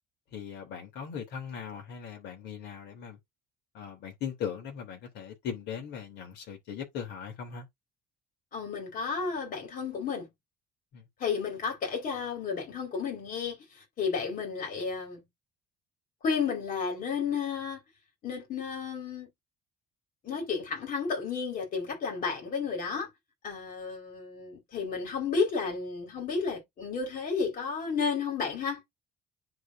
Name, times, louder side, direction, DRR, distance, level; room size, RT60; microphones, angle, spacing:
voice 1, 0.3-3.2 3.7-7.7 10.9-11.0, left 7 dB, 80° left, 3.3 m, -39 dB
voice 2, 8.5-10.3 11.2-15.2 16.2-17.8 18.2-19.3 20.2-23.1 23.4-28.8, left 5 dB, 55° left, 4.5 m, -32 dB
10.5 x 4.2 x 2.6 m
cardioid pair, 110°, 17 cm